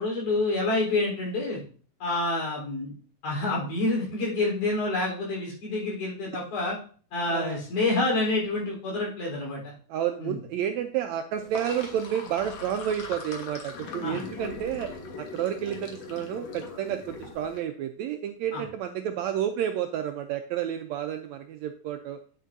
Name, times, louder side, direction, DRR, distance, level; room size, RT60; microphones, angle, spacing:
voice 1, 0.0-1.6 2.0-2.9 3.2-6.8 7.1-9.7 10.2-10.4 14.0-14.2 18.5-18.6, left 2 dB, 75° left, -4 dB, 5.5 m, -28 dB
voice 2, 9.9-22.2, right 10 dB, 80° right, 6 dB, 1.6 m, -30 dB
Sink (filling or washing), 11.3-17.6, left 4 dB, 60° left, 2.3 m, -40 dB
9.7 x 7.6 x 2.6 m, 0.42 s
omnidirectional pair, 3.7 m